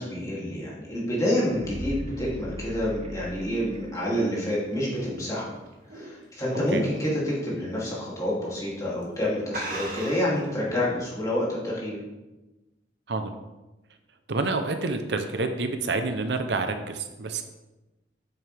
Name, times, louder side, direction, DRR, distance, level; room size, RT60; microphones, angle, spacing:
voice 1, 0.0-5.5 5.9-12.0, left 1 dB, 20° left, -7 dB, 2.7 m, -28 dB
sound 1, 1.2-4.1 4.4-4.5, equal, 35° right, 0.8 m, -38 dB
sound 2, 3.4-6.5 6.9-7.2 7.6-7.7 8.5-8.7 9.0-9.1 9.5-10.4, right 2 dB, 50° right, 1.8 m, -38 dB
voice 2, 14.3-17.4, right 3 dB, 65° right, 7 dB, 0.7 m, -28 dB
8.6 x 7.2 x 3.4 m, 1.1 s
head